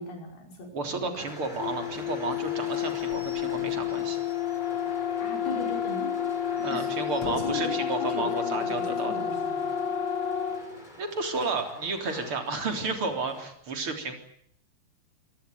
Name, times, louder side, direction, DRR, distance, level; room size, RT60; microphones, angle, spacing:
voice 1, 0.0-0.7 1.0-1.3 5.2-6.2 6.7-6.9 7.3-9.7, left 3 dB, 65° left, 2 dB, 7.1 m, -37 dB
voice 2, 0.7-4.2 6.6-9.1 11.0-14.1, right 3 dB, 35° right, 5 dB, 4.0 m, -32 dB
sound 1, 1.2-13.5, left 1 dB, 10° left, 4.2 m, -47 dB
sound 2, 1.6-10.7, left 9 dB, 85° left, 4.7 m, -30 dB
Slam / Squeak / Wood, 1.9-5.1 5.5-5.6 5.9-6.0 6.4-7.8, left 2 dB, 30° left, 2.8 m, -48 dB
27.0 x 18.0 x 9.5 m, 0.68 s
omnidirectional pair, 4.8 m